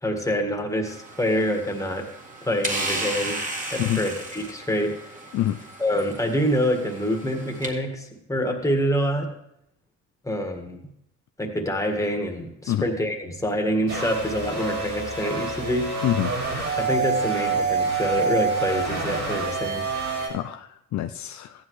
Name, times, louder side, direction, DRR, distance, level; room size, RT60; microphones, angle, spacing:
voice 1, 0.0-2.0 2.4-3.4 3.7-5.0 5.8-9.3 10.2-10.8 11.4-15.9 16.8-19.9, equal, 10° left, 2 dB, 1.8 m, -26 dB
running down, 0.9-7.7, right 2 dB, 25° right, 1.9 m, -34 dB
sound 1, 13.9-20.3, right 4 dB, 65° right, 5.4 m, -27 dB
voice 2, 16.0-16.4 20.3-21.5, left 13 dB, 65° left, 8 dB, 0.5 m, -26 dB
14.5 x 10.5 x 3.2 m, 0.79 s
cardioid pair, 90°, 30 cm